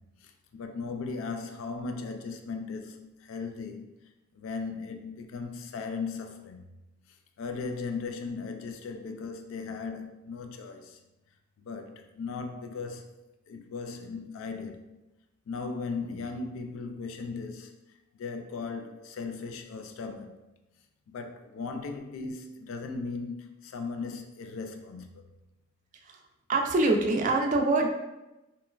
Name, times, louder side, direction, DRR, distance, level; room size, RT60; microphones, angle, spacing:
voice 1, 0.2-3.9 4.3-6.7 7.4-11.0 11.6-15.0 15.5-17.8 18.2-20.4 21.1-25.3, left 4 dB, 80° left, 0.3 m, -37 dB
voice 2, 26.5-27.9, right 2 dB, 40° right, 0.3 m, -24 dB
2.8 x 2.3 x 2.2 m
head